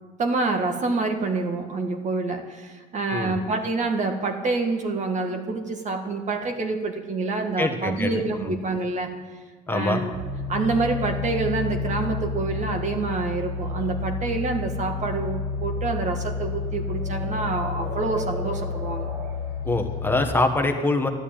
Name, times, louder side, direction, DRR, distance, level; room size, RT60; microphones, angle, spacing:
voice 1, 0.2-9.2 9.7-10.1 10.5-19.1, right 3 dB, 45° right, 5 dB, 1.9 m, -27 dB
voice 2, 7.6-8.5 9.7-10.0 19.6-21.1, left 2 dB, 10° left, 4 dB, 1.4 m, -24 dB
sound 1, 10.1-20.2, left 4 dB, 85° right, 4.7 m, -30 dB
13.0 x 11.0 x 9.1 m, 1.4 s
cardioid pair, 110°, 17 cm